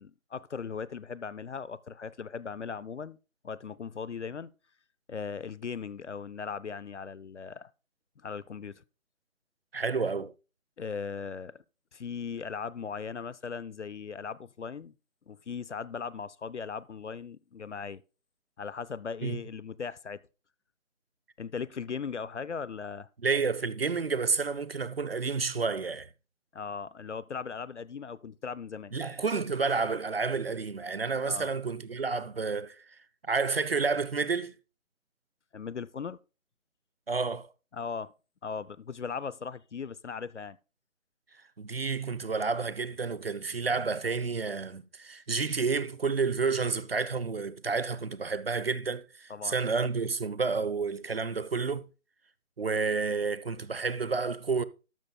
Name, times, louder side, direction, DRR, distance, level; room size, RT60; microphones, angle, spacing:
voice 1, 0.0-3.2 3.4-4.5 5.1-7.7 8.2-8.8 10.8-11.6 11.9-14.9 15.3-18.0 18.6-20.2 21.4-23.1 26.5-28.9 31.2-31.5 35.5-36.2 37.7-38.1 38.4-40.6 49.3-49.6, left 6 dB, 60° left, 0.5 m, -38 dB
voice 2, 9.7-10.3 19.2-19.4 23.2-26.1 28.9-32.8 33.3-34.5 37.1-37.5 41.6-51.9 52.6-54.6, right 4 dB, 45° right, 0.5 m, -30 dB
12.5 x 12.5 x 2.2 m
figure-of-eight pair, 160°, 41 cm